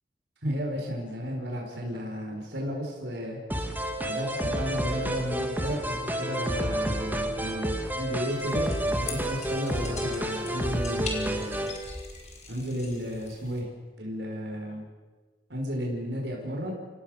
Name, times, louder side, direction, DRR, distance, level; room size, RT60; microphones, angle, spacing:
voice 1, 0.4-3.4 4.0-11.7 12.5-13.7 14.0-14.8 15.5-16.7, equal, 75° right, -1 dB, 5.4 m, -33 dB
sound 1, 3.5-11.8, right 1 dB, 10° right, 2.3 m, -30 dB
sound 2, 8.3-13.6, left 4 dB, 40° left, 5.1 m, -42 dB
29.0 x 17.5 x 6.7 m, 1.3 s
head